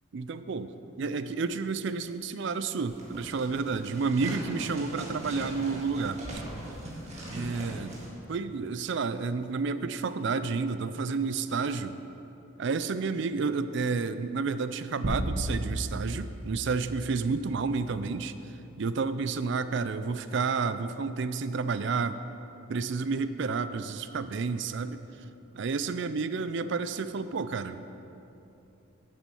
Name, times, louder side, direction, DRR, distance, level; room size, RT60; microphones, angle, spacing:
voice 1, 0.1-0.7 1.0-6.4 7.3-7.9 8.3-12.0 12.6-18.3 18.8-22.2 22.7-25.0 25.5-27.8, right 4 dB, 55° right, 12 dB, 0.4 m, -30 dB
sound 1, 2.8-8.1, right 1 dB, 30° right, 1.7 m, -40 dB
sound 2, 15.0-17.6, right 1 dB, 90° right, 1.0 m, -34 dB
9.9 x 7.3 x 5.4 m, 2.8 s
head